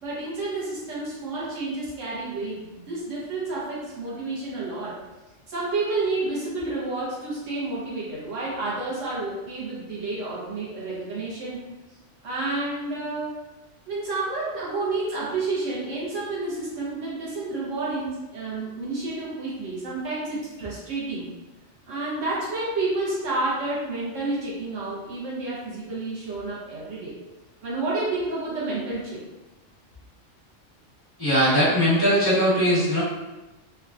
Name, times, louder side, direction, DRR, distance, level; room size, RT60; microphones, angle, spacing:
voice 1, 0.0-5.0 5.5-11.6 12.2-13.3 13.9-21.3 21.9-27.1 27.6-29.2, right 2 dB, 85° right, -7 dB, 1.3 m, -30 dB
voice 2, 31.2-33.0, equal, 20° left, -12 dB, 1.5 m, -20 dB
3.6 x 2.3 x 2.4 m, 1.1 s
omnidirectional pair, 1.3 m